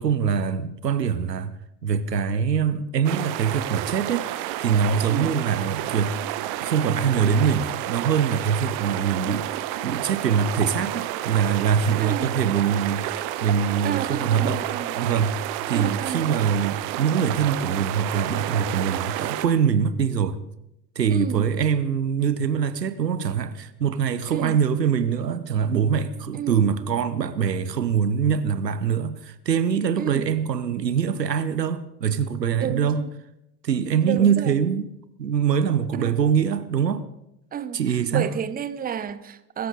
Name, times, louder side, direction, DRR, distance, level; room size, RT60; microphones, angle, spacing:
voice 1, 0.0-1.5 1.8-6.2 6.6-14.6 15.0-20.4 20.9-33.0 33.6-34.8 35.2-37.1 37.7-38.3, right 7 dB, 80° right, 1.0 m, -23 dB
sound 1, 3.0-19.5, right 13 dB, 50° right, 1.3 m, -30 dB
voice 2, 12.0-12.4 13.8-15.0 15.7-16.3 21.1-21.5 24.3-24.6 26.3-26.6 30.0-30.3 32.6-33.1 34.0-34.5 35.9-36.2 37.5-39.7, right 8 dB, 20° right, 0.9 m, -31 dB
23.0 x 13.5 x 4.0 m
figure-of-eight pair, 70°, 49 cm